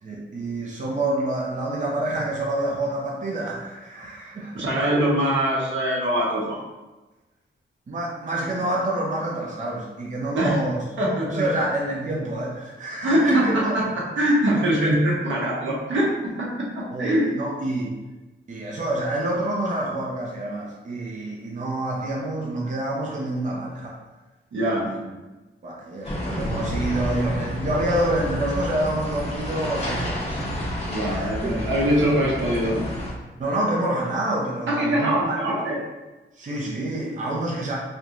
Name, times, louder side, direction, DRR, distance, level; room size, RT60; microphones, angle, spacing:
voice 1, 0.0-4.7 7.9-10.8 11.3-13.8 16.9-17.9 18.5-23.9 24.9-25.0 25.6-30.4 31.1-31.6 33.4-35.3 36.4-37.8, right 1 dB, 40° right, -3 dB, 0.6 m, -27 dB
voice 2, 4.5-6.6 10.3-10.6 11.0-11.4 13.0-17.3 24.5-24.9 30.8-32.8 34.7-35.8, equal, 70° right, -4 dB, 0.9 m, -23 dB
sound 1, 26.0-33.1, equal, 30° left, 0.8 m, -30 dB
3.3 x 2.9 x 2.5 m, 1.2 s
cardioid pair, 85°, 20 cm